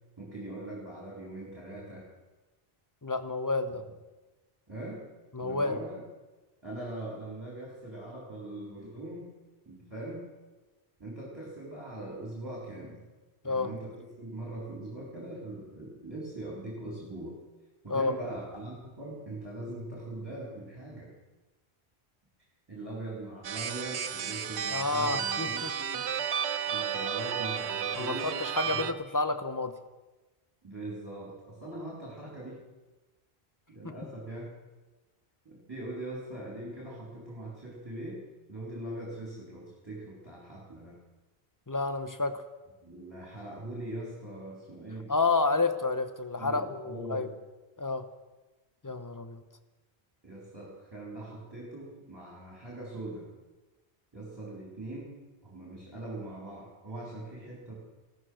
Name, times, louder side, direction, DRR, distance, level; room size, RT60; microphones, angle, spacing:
voice 1, 0.2-2.1 4.7-5.0 5.4-6.0 6.6-9.3 9.7-10.3 11.0-13.0 13.4-17.4 17.8-21.1 22.7-26.1 26.7-28.3 28.6-28.8 30.6-32.6 33.7-34.6 35.4-38.2 38.5-41.0 42.8-45.1 46.4-47.4 50.2-53.3 54.1-55.1 55.4-57.7, right 1 dB, 20° right, -4 dB, 4.1 m, -41 dB
voice 2, 3.0-3.8 5.3-5.8 13.4-13.7 17.9-18.2 24.7-25.7 28.0-29.7 41.7-42.4 45.1-47.3 47.8-48.0 48.8-49.4, left 3 dB, 20° left, 9 dB, 0.9 m, -30 dB
sound 1, 23.4-28.9, right 8 dB, 80° right, 1.1 m, -32 dB
15.5 x 13.5 x 6.4 m, 1.2 s
omnidirectional pair, 1.1 m